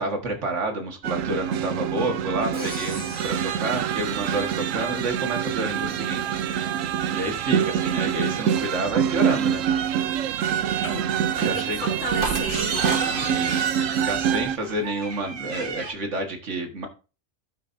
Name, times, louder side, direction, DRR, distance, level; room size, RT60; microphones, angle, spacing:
voice 1, 0.0-6.8 7.1-9.7 11.3-11.8 13.2-13.8 14.1-16.9, right 2 dB, 65° right, 1.9 m, -29 dB
sound 1, 1.0-14.6, right 9 dB, 85° right, 1.0 m, -25 dB
Crash cymbal, 2.5-4.7, equal, 20° right, 2.1 m, -40 dB
voice 2, 11.4-13.3, left 1 dB, 65° left, 1.8 m, -33 dB
sound 2, 12.0-15.9, right 4 dB, 45° right, 1.4 m, -31 dB
16.0 x 5.7 x 2.6 m
omnidirectional pair, 1.3 m